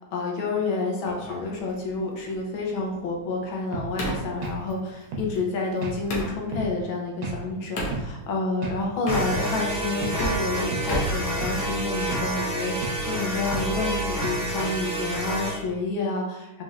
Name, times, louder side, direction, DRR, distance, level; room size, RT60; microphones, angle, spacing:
voice 1, 0.1-16.6, left 3 dB, 80° left, -1 dB, 1.6 m, -29 dB
sound 1, 1.1-6.4 7.8-8.0 8.9-9.7 10.0-12.0, equal, 65° left, 1.3 m, -33 dB
sound 2, 3.7-3.9 4.4-4.6 5.1-5.3 5.8-6.0 6.5-6.7 7.2-7.4 7.9-8.1 8.6-8.8 9.3-9.5 10.0-10.2 10.7-10.9 11.4-11.6 12.1-12.3 12.8-13.0 13.5-13.7 14.2-14.4, right 3 dB, 85° right, 1.5 m, -32 dB
sound 3, 9.1-15.6, right 1 dB, 10° right, 0.3 m, -29 dB
4.1 x 3.1 x 2.4 m, 0.96 s
omnidirectional pair, 2.2 m